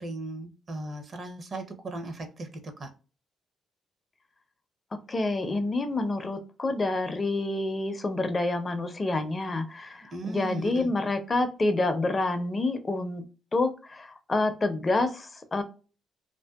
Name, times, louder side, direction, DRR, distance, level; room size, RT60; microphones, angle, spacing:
voice 1, 0.0-2.9 10.1-10.9, right 2 dB, 45° right, 7 dB, 0.6 m, -37 dB
voice 2, 5.1-13.2 13.5-15.6, left 2 dB, 30° left, 9 dB, 0.4 m, -28 dB
2.6 x 2.2 x 2.3 m, 0.34 s
cardioid pair, 90°, 0 cm